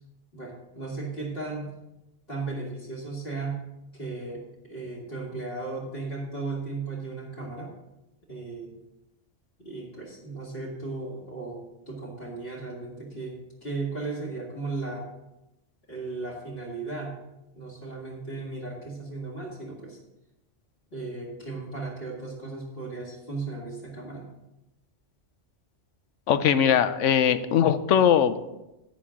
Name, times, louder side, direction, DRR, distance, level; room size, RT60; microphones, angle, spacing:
voice 1, 0.3-1.7 2.3-3.6 3.9-4.4 4.7-7.7 8.3-8.7 9.6-15.1 15.9-17.2 17.5-20.0 20.9-24.3, right 3 dB, 55° left, -4 dB, 2.2 m, -36 dB
voice 2, 26.3-28.5, left 8 dB, 80° left, 12 dB, 1.0 m, -21 dB
11.0 x 8.6 x 3.7 m, 0.94 s
omnidirectional pair, 1.3 m